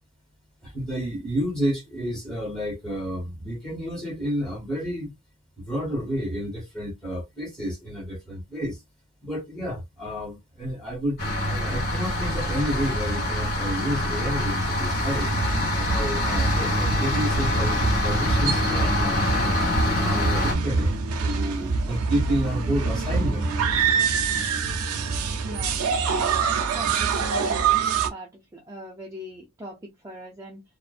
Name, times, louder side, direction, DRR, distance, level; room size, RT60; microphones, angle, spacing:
voice 1, 0.6-5.1 5.6-8.8 9.2-11.2 11.5-15.3 15.7-19.5 19.9-23.5, equal, 5° left, 1.2 m, -30 dB
sound 1, 11.2-20.5, left 1 dB, 45° left, 1.0 m, -25 dB
sound 2, 15.1-28.1, right 5 dB, 75° right, 0.5 m, -26 dB
voice 2, 25.4-25.7 26.6-27.8 28.1-30.6, right 1 dB, 15° right, 0.5 m, -40 dB
2.5 x 2.1 x 2.4 m
head